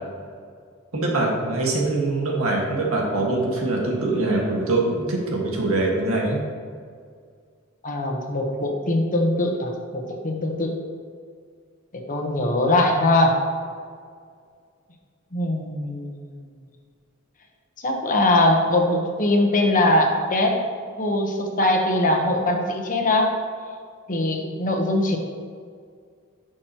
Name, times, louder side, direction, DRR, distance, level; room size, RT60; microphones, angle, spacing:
voice 1, 0.9-6.4, right 2 dB, 85° right, -2 dB, 1.8 m, -23 dB
voice 2, 7.8-10.8 11.9-13.3 15.3-16.3 17.8-20.6 21.0-23.4 24.1-25.2, left 1 dB, 40° left, 2 dB, 1.1 m, -21 dB
11.0 x 6.3 x 3.0 m, 2.1 s
head